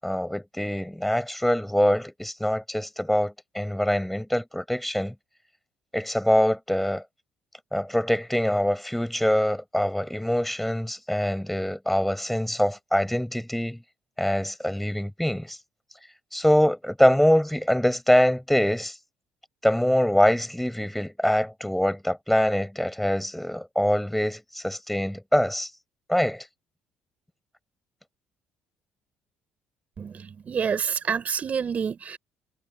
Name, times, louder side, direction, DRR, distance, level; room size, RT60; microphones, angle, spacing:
voice 1, 0.0-5.1 5.9-7.0 7.7-13.8 14.2-15.6 16.3-19.0 19.6-25.7 26.1-26.5, equal, 5° left, 6.6 m, -24 dB
voice 2, 30.0-32.2, right 6 dB, 40° right, 5.7 m, -28 dB
cardioid pair, 105°, 4 cm